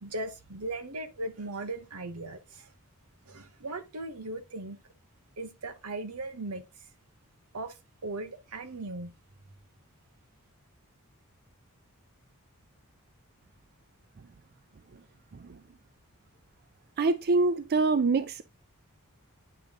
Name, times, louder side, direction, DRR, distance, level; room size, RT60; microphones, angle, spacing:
voice 1, 0.0-2.7 3.3-4.8 5.4-6.6 7.5-7.8 8.0-9.1, right 2 dB, 85° right, 1.1 m, -38 dB
voice 2, 17.0-18.4, right 3 dB, 45° right, 0.4 m, -24 dB
9.0 x 3.5 x 3.7 m
head